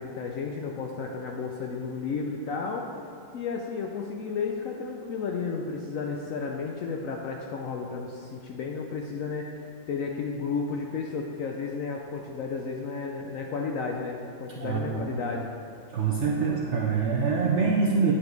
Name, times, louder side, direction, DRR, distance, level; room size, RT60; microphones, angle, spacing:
voice 1, 0.0-2.9 3.3-15.5, left 5 dB, 70° left, 1 dB, 0.8 m, -33 dB
voice 2, 14.6-15.0 15.9-18.1, right 5 dB, 65° right, -2 dB, 0.7 m, -25 dB
9.7 x 5.4 x 3.9 m, 2.5 s
omnidirectional pair, 1.9 m